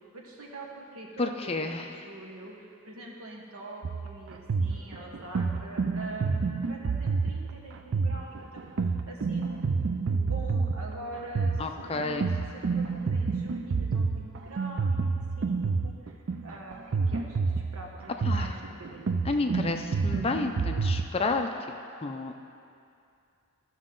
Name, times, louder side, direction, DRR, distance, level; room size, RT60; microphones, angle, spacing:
voice 1, 0.0-16.1 16.4-19.1, right 1 dB, 80° right, -2 dB, 1.4 m, -44 dB
voice 2, 1.2-1.9 11.6-12.3 18.2-18.5 19.3-21.5 22.0-22.3, left 3 dB, 25° left, 5 dB, 0.4 m, -30 dB
sound 1, 3.8-21.1, right 4 dB, 55° right, 0.4 m, -29 dB
13.5 x 6.3 x 3.8 m, 2.5 s
head